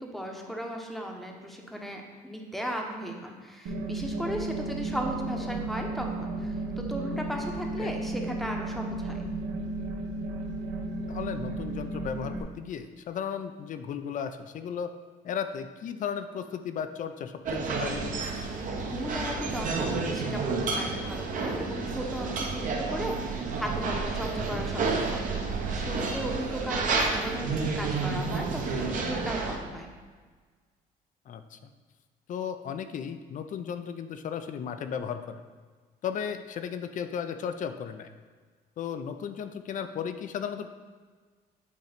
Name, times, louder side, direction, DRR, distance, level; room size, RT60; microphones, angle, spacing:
voice 1, 0.0-9.3 18.8-29.9, equal, ahead, 2 dB, 0.9 m, -36 dB
sound 1, 3.7-12.4, right 2 dB, 90° right, 1.0 m, -34 dB
voice 2, 11.1-14.9 15.2-18.3 24.5-24.7 31.3-31.7 32.3-35.5 36.0-38.1 38.8-40.7, left 7 dB, 50° left, 9 dB, 0.5 m, -35 dB
sound 2, 17.5-29.6, right 4 dB, 50° right, 1.0 m, -30 dB
8.2 x 3.0 x 5.1 m, 1.5 s
cardioid pair, 110°, 17 cm